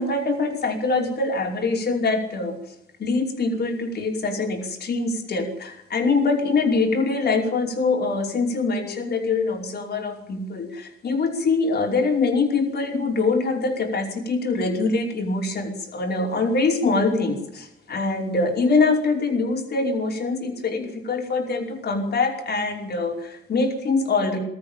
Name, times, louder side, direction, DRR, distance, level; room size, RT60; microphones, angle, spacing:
voice 1, 0.0-2.6 3.0-24.4, left 3 dB, 50° left, 1 dB, 5.3 m, -24 dB
22.5 x 13.5 x 8.9 m, 0.80 s
cardioid pair, 100°, 21 cm